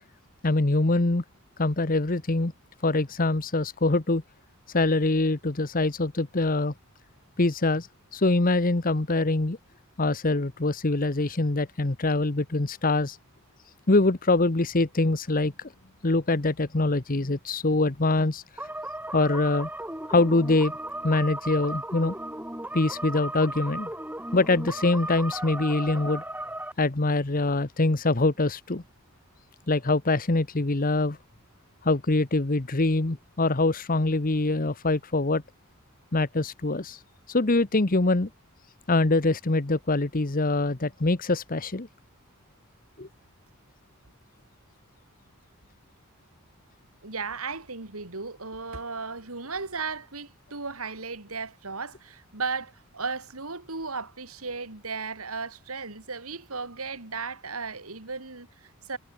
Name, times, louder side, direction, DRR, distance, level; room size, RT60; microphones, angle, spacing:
voice 1, 0.4-1.2 1.6-2.5 2.8-4.2 4.7-6.7 7.4-9.6 10.0-13.2 13.9-15.5 16.0-18.7 19.1-19.7 20.1-20.7 21.0-22.1 22.7-23.9 24.3-26.2 26.8-28.8 29.7-31.2 31.8-35.4 36.1-37.0 37.3-38.3 38.9-41.9 43.0-43.1, left 2 dB, 40° left, 1.1 m, -24 dB
sound 1, 18.6-26.7, right 1 dB, 10° right, 6.6 m, -36 dB
voice 2, 25.7-26.1 47.0-59.0, right 4 dB, 85° right, 3.4 m, -35 dB
head